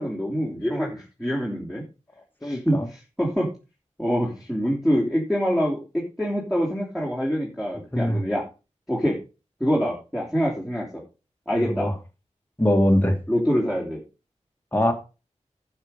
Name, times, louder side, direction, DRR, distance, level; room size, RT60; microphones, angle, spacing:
voice 1, 0.0-1.8 2.4-3.5 4.0-8.4 8.9-9.2 9.6-11.0 11.5-11.9 13.3-14.0, equal, ahead, -4 dB, 3.3 m, -25 dB
voice 2, 2.4-2.9 7.9-8.2 11.5-11.9 12.6-13.2 14.7-14.9, left 1 dB, 15° left, 3 dB, 2.0 m, -22 dB
11.5 x 6.0 x 5.2 m, 0.31 s
wide cardioid pair, 65°, 13 cm